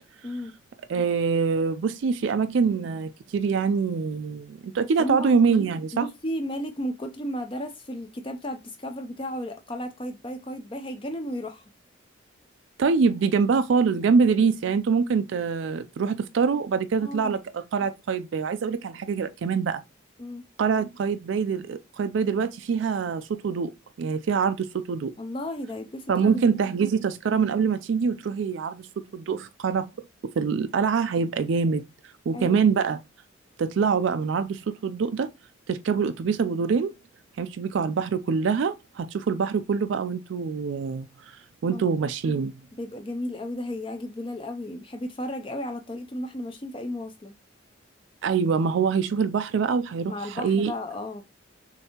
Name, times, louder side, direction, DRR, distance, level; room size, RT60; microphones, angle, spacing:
voice 1, 0.9-6.1 12.8-19.8 20.6-23.7 24.0-25.1 26.1-28.9 29.1-29.9 30.2-31.8 32.3-33.0 33.6-35.3 35.7-36.9 37.4-41.1 41.6-42.5 48.2-50.7, right 5 dB, 65° right, 0.4 m, -24 dB
voice 2, 5.0-5.3 5.9-11.6 17.0-17.4 20.2-20.4 25.2-26.5 32.3-32.6 41.7-41.9 42.8-47.3 50.1-51.2, left 1 dB, 25° left, 0.5 m, -34 dB
6.5 x 2.7 x 2.8 m
head